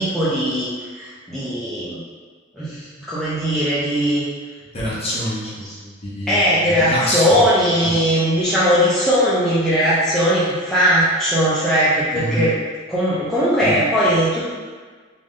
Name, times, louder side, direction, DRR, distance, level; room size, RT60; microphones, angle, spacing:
voice 1, 0.0-2.0 2.5-4.2 6.3-12.6 12.9-14.5, equal, ahead, -11 dB, 0.6 m, -19 dB
voice 2, 4.7-6.4 6.7-7.4 7.8-7.9 12.1-12.4 13.6-13.8, equal, 30° left, -7 dB, 1.0 m, -26 dB
3.4 x 2.6 x 3.7 m, 1.5 s
head